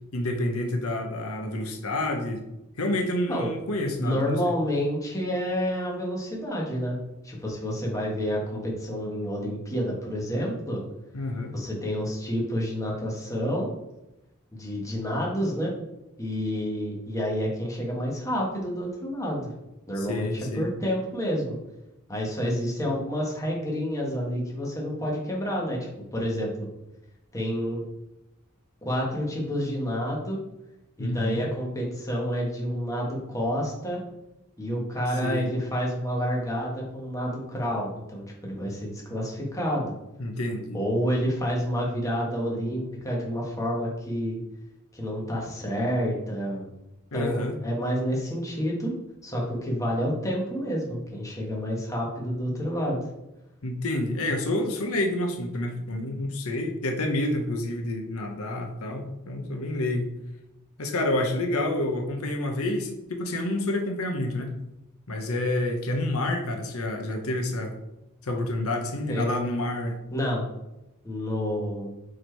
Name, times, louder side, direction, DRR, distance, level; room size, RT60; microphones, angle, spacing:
voice 1, 0.1-2.4 2.8-4.6 11.1-11.5 20.0-20.7 31.0-31.5 35.2-35.5 40.2-40.8 47.1-47.6 53.6-60.1 60.8-64.5 65.1-67.7 68.2-70.0, left 1 dB, 80° left, 4 dB, 0.8 m, -28 dB
voice 2, 4.0-7.0 7.2-10.8 11.5-13.7 14.5-15.7 16.2-19.5 19.9-21.6 22.1-25.9 26.1-26.7 27.3-27.8 28.8-30.4 31.0-34.0 34.6-39.9 40.7-44.4 44.9-46.6 47.1-48.9 49.2-53.0 69.1-69.3 70.1-70.4 71.0-71.9, equal, 15° left, -3 dB, 1.4 m, -29 dB
4.8 x 4.4 x 4.6 m, 0.92 s
head